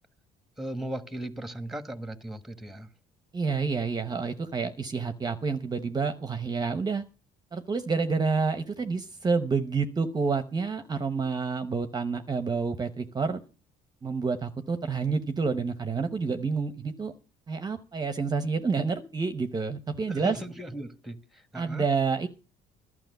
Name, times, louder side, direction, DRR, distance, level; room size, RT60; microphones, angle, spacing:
voice 1, 0.6-2.9 20.1-21.9, right 1 dB, ahead, 1.2 m, -37 dB
voice 2, 3.3-7.0 7.5-13.4 14.0-17.1 17.5-20.4 21.5-22.3, right 4 dB, 25° right, 0.8 m, -29 dB
12.0 x 6.0 x 9.2 m
cardioid pair, 110°, 17 cm